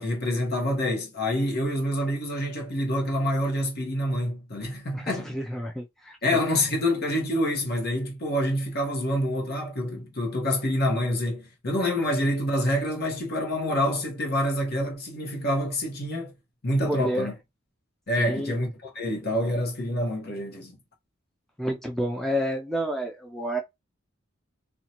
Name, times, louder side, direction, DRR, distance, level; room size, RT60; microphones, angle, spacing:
voice 1, 0.0-5.4 6.2-16.3 16.6-17.3 18.1-20.8, left 1 dB, 55° left, 1.0 m, -27 dB
voice 2, 4.9-6.2 16.9-17.3 18.2-18.5 21.6-23.6, equal, ahead, 0.4 m, -29 dB
2.7 x 2.2 x 2.8 m
head